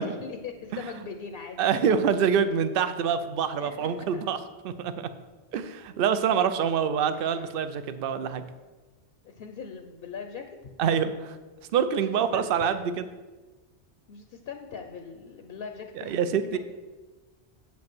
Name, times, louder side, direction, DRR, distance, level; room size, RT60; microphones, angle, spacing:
voice 1, 0.0-1.9 3.6-4.2 6.4-6.5 7.1-7.5 9.2-10.6 12.0-12.8 14.1-16.6, left 6 dB, 65° left, 6 dB, 0.9 m, -41 dB
voice 2, 1.6-4.4 4.6-5.1 5.5-8.4 10.8-11.4 11.7-12.8 16.0-16.6, right 7 dB, 65° right, 11 dB, 0.7 m, -26 dB
8.3 x 5.2 x 6.0 m, 1.2 s
omnidirectional pair, 1.1 m